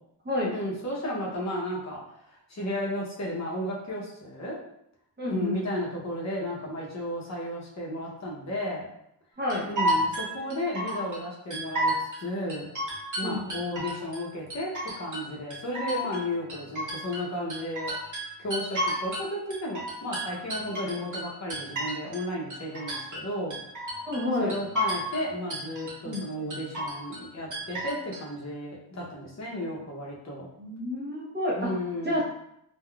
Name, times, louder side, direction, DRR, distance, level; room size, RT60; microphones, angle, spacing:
voice 1, 0.5-2.0 2.3-4.6 5.3-8.8 9.7-12.7 13.2-17.9 18.4-23.6 24.4-30.5 31.5-32.2, left 1 dB, 40° left, -4 dB, 0.7 m, -33 dB
voice 2, 5.2-5.6 9.4-9.7 13.2-13.4 24.1-24.6 26.0-26.3 30.6-31.7 32.0-32.2, left 1 dB, 25° right, -4 dB, 0.6 m, -29 dB
sound 1, 9.5-11.2 11.5-12.2 12.5-14.2 14.5-15.2 15.5-19.3 19.5-22.2 22.5-23.2 23.5-24.2 24.5-25.2 25.5-26.2 26.5-27.2 27.5-28.2, equal, 45° right, 1.0 m, -31 dB
3.6 x 2.2 x 2.2 m, 0.76 s
wide cardioid pair, 120°, 43 cm